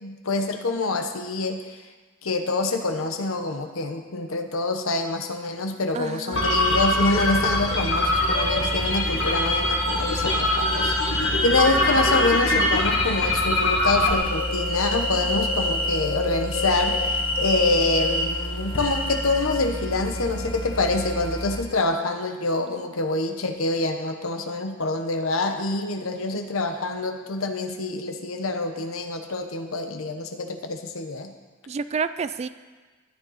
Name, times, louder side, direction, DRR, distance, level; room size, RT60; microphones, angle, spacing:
voice 1, 0.0-1.6 2.2-10.9 11.4-31.3, left 2 dB, 80° left, 5 dB, 1.0 m, -26 dB
voice 2, 5.9-6.8 26.3-26.6 31.7-32.5, right 5 dB, 30° right, 13 dB, 0.3 m, -31 dB
sound 1, 6.3-21.6, left 1 dB, 60° left, 2.0 m, -25 dB
sound 2, 6.4-6.9 8.1-9.6 10.2-12.2 12.5-16.0 16.5-18.3 18.7-19.6, left 1 dB, 25° left, 1.5 m, -31 dB
13.0 x 9.4 x 4.2 m, 1.3 s
head